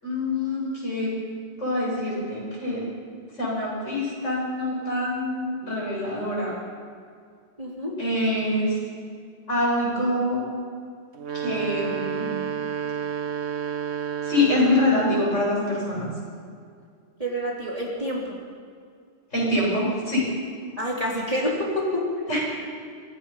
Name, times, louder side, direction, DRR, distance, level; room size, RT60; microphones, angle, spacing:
voice 1, 0.0-1.1 1.6-2.8 3.4-6.5 8.0-8.8 9.5-10.5 11.3-12.3 14.2-16.1 19.3-20.2 22.3-22.4, left 1 dB, 80° left, -4 dB, 8.3 m, -25 dB
voice 2, 7.6-7.9 17.2-18.4 20.8-22.0, equal, 30° right, -3 dB, 3.7 m, -27 dB
sound 1, 11.1-15.2, right 8 dB, 65° right, 1.4 m, -30 dB
24.0 x 19.0 x 5.8 m, 2.2 s
omnidirectional pair, 1.3 m